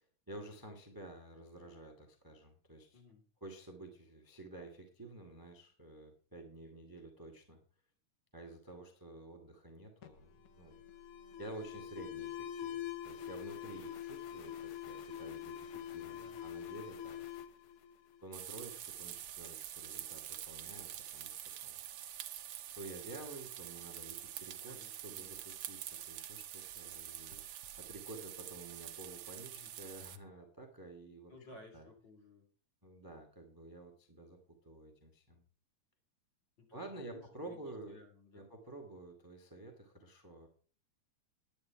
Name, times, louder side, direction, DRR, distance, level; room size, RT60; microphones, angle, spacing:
voice 1, 0.0-3.0 3.4-7.6 8.3-10.8 11.4-17.2 18.2-22.2 22.7-27.4 27.8-31.3 31.7-31.9 32.8-35.4 36.7-38.0 38.3-40.5, right 2 dB, 10° right, 4 dB, 1.3 m, -51 dB
voice 2, 2.9-3.2 16.1-16.4 24.7-25.3 29.5-29.7 31.3-32.4 36.6-38.5, left 3 dB, 35° left, 1 dB, 3.3 m, -57 dB
Alarm, 10.0-18.6, left 10 dB, 75° left, 1.3 m, -45 dB
sound 1, 18.3-30.2, right 11 dB, 75° right, 1.3 m, -46 dB
10.5 x 10.5 x 4.6 m, 0.40 s
omnidirectional pair, 3.7 m